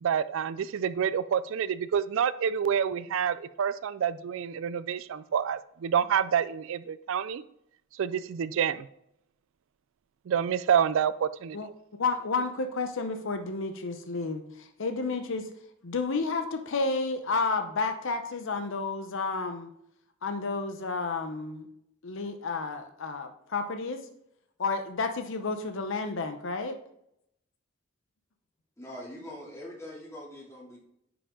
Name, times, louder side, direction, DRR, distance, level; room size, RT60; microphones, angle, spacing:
voice 1, 0.0-7.4 7.9-8.9 10.3-11.6, right 8 dB, 70° right, 15 dB, 0.4 m, -28 dB
voice 2, 11.5-15.5 15.8-19.7 20.2-21.7 22.0-24.0 24.6-26.8, left 4 dB, 65° left, 7 dB, 0.7 m, -31 dB
voice 3, 28.8-30.8, left 1 dB, 15° left, -5 dB, 2.7 m, -43 dB
10.0 x 5.0 x 3.7 m, 0.75 s
head